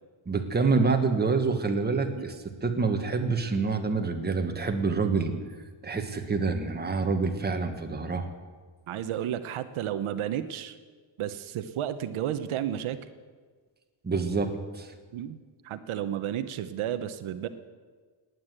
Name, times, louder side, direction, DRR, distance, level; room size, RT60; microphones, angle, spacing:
voice 1, 0.3-5.3 5.8-8.3 14.0-14.9, right 4 dB, 20° right, 5 dB, 1.4 m, -27 dB
voice 2, 8.9-10.8 11.2-13.0 15.1-17.5, right 10 dB, 80° right, 10 dB, 1.0 m, -32 dB
18.5 x 9.6 x 8.0 m, 1.5 s
cardioid pair, 155°, 48 cm